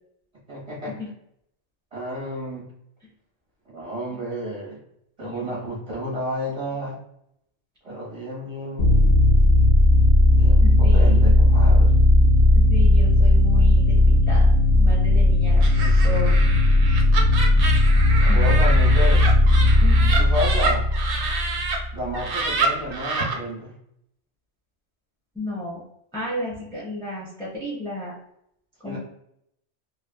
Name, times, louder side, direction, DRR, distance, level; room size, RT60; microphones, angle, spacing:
voice 1, 0.5-1.0 1.9-2.7 3.7-4.8 5.2-7.0 7.8-9.0 10.4-12.0 15.8-16.0 18.2-19.2 20.2-20.8 21.9-23.7 28.8-29.0, equal, 35° right, -5 dB, 1.0 m, -31 dB
sound 1, 8.8-22.2, left 1 dB, 65° left, 0.9 m, -16 dB
voice 2, 10.6-11.1 12.5-14.0 14.3-14.5 14.7-15.6 16.0-16.3 18.3-18.5 19.8-20.2 25.4-25.8 26.1-28.2 28.8-29.0, left 1 dB, 5° left, -7 dB, 0.4 m, -33 dB
Laughter, 15.6-21.8 22.1-23.4, right 4 dB, 75° right, 0.9 m, -28 dB
3.0 x 2.4 x 2.2 m, 0.75 s
omnidirectional pair, 1.2 m